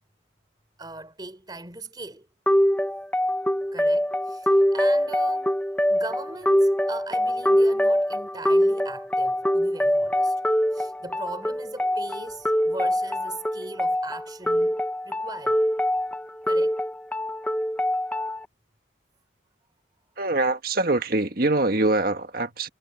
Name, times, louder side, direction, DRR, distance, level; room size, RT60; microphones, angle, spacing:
voice 1, 0.8-2.3 3.7-5.6 5.9-10.4 10.7-14.8 15.0-15.6 16.4-16.8, right 2 dB, 25° right, 4.1 m, -39 dB
sound 1, 2.5-18.4, equal, 5° left, 1.0 m, -24 dB
voice 2, 20.2-22.7, right 2 dB, 50° right, 1.6 m, -24 dB
head